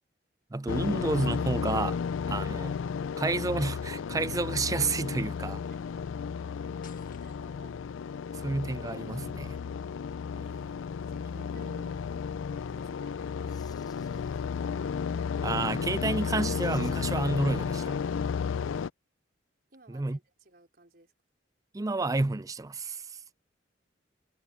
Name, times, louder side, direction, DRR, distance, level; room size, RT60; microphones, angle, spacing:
voice 1, 0.5-2.0 2.3-2.8 3.2-5.6 8.3-9.6 15.4-18.0 19.9-20.2 21.7-23.1, right 3 dB, 15° right, 0.4 m, -30 dB
sound 1, 0.7-18.9, left 6 dB, 85° left, 0.4 m, -33 dB
sound 2, 6.8-7.8, left 7 dB, 45° left, 1.7 m, -55 dB
voice 2, 7.2-7.8 10.3-12.1 12.6-14.4 19.7-21.1, right 2 dB, 50° right, 4.8 m, -57 dB
sound 3, 13.4-17.3, left 6 dB, 20° left, 7.4 m, -62 dB
head